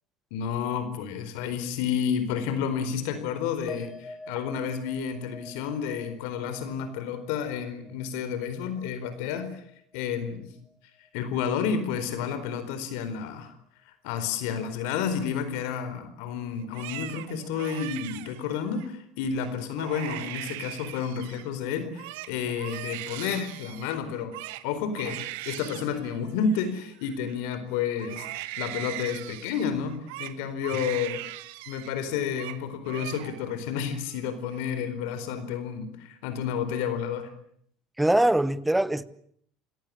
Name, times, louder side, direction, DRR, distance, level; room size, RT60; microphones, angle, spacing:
voice 1, 0.3-9.6 9.9-10.5 11.1-13.5 13.9-24.4 24.6-31.2 31.7-37.3, left 7 dB, 80° left, 4.4 m, -31 dB
sound 1, 3.7-10.4 10.6-11.3, left 2 dB, 15° left, 4.5 m, -49 dB
Crying sobbing, 16.6-18.9 19.4-19.5 19.8-21.5 21.8-27.6 28.0-31.9 32.2-32.6 32.9-33.6 33.9-34.6, right 18 dB, 85° right, 1.2 m, -40 dB
voice 2, 38.0-39.0, right 1 dB, 5° right, 1.0 m, -22 dB
28.0 x 17.5 x 8.8 m
cardioid pair, 140°, 0 cm